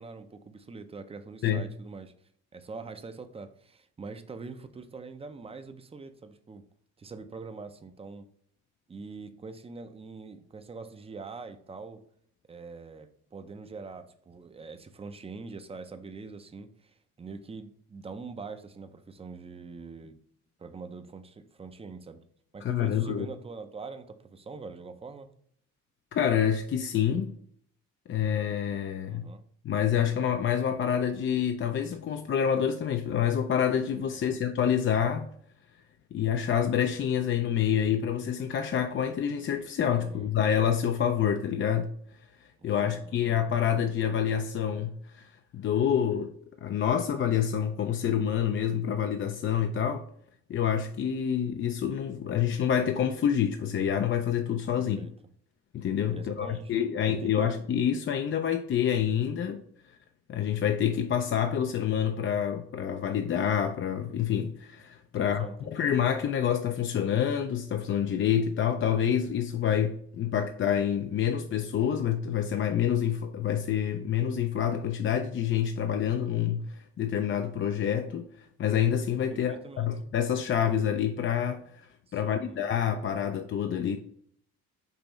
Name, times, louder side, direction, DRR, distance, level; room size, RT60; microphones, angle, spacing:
voice 1, 0.0-2.1 2.5-6.6 7.0-8.3 8.9-12.0 12.5-20.2 20.6-22.2 22.5-25.3 29.1-29.4 34.1-34.4 40.0-40.3 42.6-43.2 54.8-55.1 56.1-57.5 65.2-65.5 79.3-79.9 82.1-82.7, right 4 dB, 20° right, 0.5 m, -44 dB
voice 2, 22.6-23.3 26.1-27.3 28.1-29.3 29.6-35.3 36.1-41.9 42.6-46.3 46.6-50.1 50.5-55.0 55.7-59.6 60.3-78.3 78.6-81.6 82.1-84.0, left 9 dB, 40° left, 0.4 m, -27 dB
5.5 x 3.0 x 3.0 m
cardioid pair, 90°, 30 cm